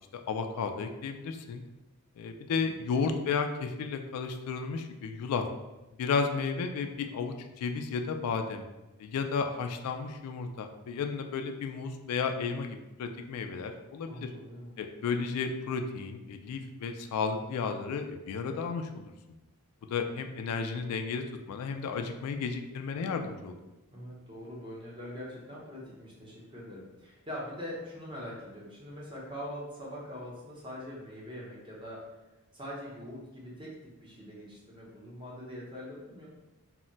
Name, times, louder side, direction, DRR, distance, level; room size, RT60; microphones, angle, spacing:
voice 1, 0.3-1.6 2.2-5.5 6.0-8.7 9.0-14.3 14.8-19.1 19.9-23.6, left 5 dB, 85° left, 9 dB, 0.3 m, -33 dB
voice 2, 14.1-14.8 23.9-32.0 32.5-36.3, equal, 20° right, -5 dB, 0.6 m, -43 dB
2.2 x 2.1 x 3.8 m, 1.1 s
head